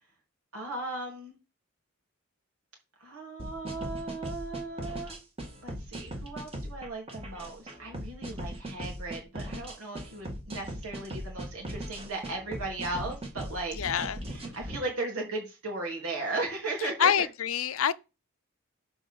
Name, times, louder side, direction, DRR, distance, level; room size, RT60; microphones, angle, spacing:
voice 1, 0.5-1.3 3.0-5.1 5.6-13.8 14.3-17.1, right 2 dB, 85° right, 3.4 m, -36 dB
sound 1, 3.4-14.8, right 1 dB, 25° right, 1.9 m, -39 dB
voice 2, 13.7-14.2 16.8-17.9, left 8 dB, 75° left, 0.5 m, -26 dB
6.9 x 5.3 x 6.9 m
head